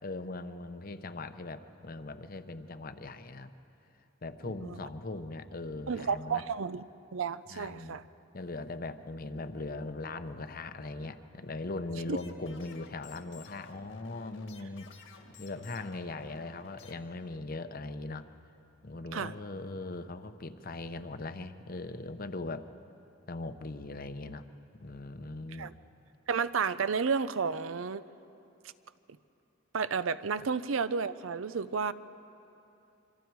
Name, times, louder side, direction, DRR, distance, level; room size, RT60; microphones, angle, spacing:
voice 1, 0.0-3.5 4.2-6.4 7.5-8.0 8.3-18.2 18.8-22.7 23.3-24.4 24.8-25.7, left 2 dB, 45° left, 10 dB, 0.8 m, -40 dB
voice 2, 5.9-6.8 7.1-8.0 12.1-12.2 19.1-19.3 25.6-25.7 26.3-28.0 29.7-31.9, right 5 dB, 85° right, 15 dB, 0.6 m, -31 dB
sound 1, 12.0-17.0, left 4 dB, 70° left, 1.9 m, -54 dB
26.0 x 25.0 x 4.7 m, 2.9 s
head